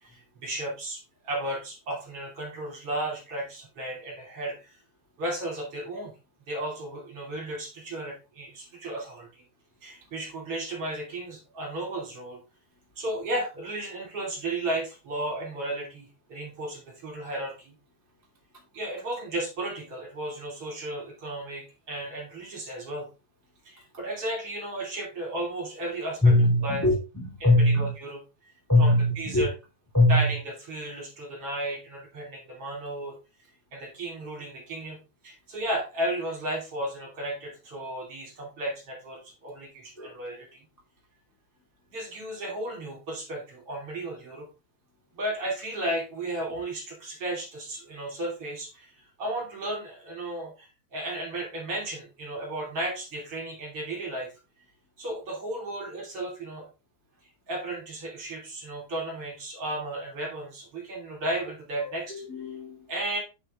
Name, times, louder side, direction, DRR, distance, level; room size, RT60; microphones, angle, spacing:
voice 1, 0.0-4.8 5.2-6.1 6.5-9.4 9.8-12.4 13.0-17.7 18.7-23.1 23.6-26.3 26.6-26.8 27.4-28.2 28.8-29.5 30.1-33.2 33.7-35.0 35.2-40.6 41.9-44.5 45.1-54.3 55.0-56.7 57.5-62.2 62.9-63.2, right 1 dB, 35° right, 0 dB, 3.0 m, -34 dB
voice 2, 26.2-27.9 28.7-29.5 29.9-30.3 40.0-40.1 61.8-62.8, left 1 dB, 10° left, -2 dB, 1.0 m, -22 dB
8.7 x 6.9 x 3.6 m, 0.29 s
omnidirectional pair, 5.2 m